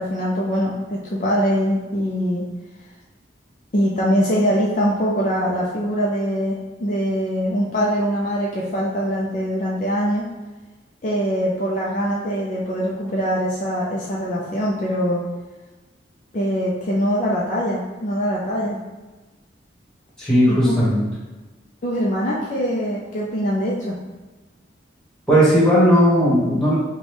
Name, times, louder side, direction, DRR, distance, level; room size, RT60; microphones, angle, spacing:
voice 1, 0.0-2.5 3.7-10.3 11.0-15.2 16.3-18.8 20.5-20.8 21.8-24.0, equal, 40° left, -4 dB, 0.5 m, -23 dB
voice 2, 20.2-21.1 25.3-26.8, equal, 5° left, -8 dB, 1.4 m, -16 dB
5.1 x 2.3 x 3.3 m, 1.2 s
head